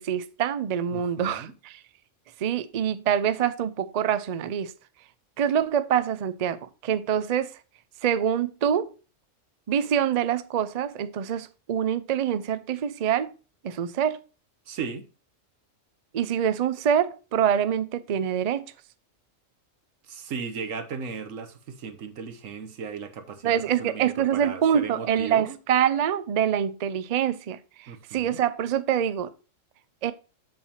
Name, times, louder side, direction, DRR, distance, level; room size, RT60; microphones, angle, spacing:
voice 1, 0.0-1.8 2.4-4.7 5.4-7.5 8.0-8.9 9.7-13.3 13.6-14.2 16.1-18.7 23.4-29.3 30.0-30.1, right 9 dB, 55° right, 0.4 m, -25 dB
voice 2, 0.9-1.5 14.7-15.1 20.1-25.6 27.9-28.4, right 5 dB, 90° right, 1.3 m, -36 dB
7.7 x 7.3 x 2.8 m
omnidirectional pair, 1.3 m